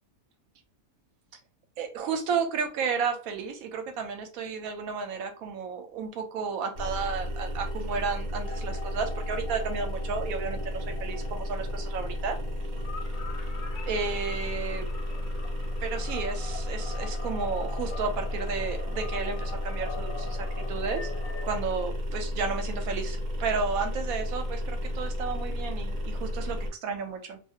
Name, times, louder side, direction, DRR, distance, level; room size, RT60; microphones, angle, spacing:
voice 1, 1.8-12.4 13.8-14.9 15.8-27.4, right 5 dB, 80° right, 1.0 m, -32 dB
sound 1, 6.7-26.7, left 1 dB, 50° right, 0.6 m, -33 dB
sound 2, 8.4-21.6, left 5 dB, 70° left, 1.0 m, -44 dB
2.6 x 2.4 x 2.8 m
omnidirectional pair, 1.5 m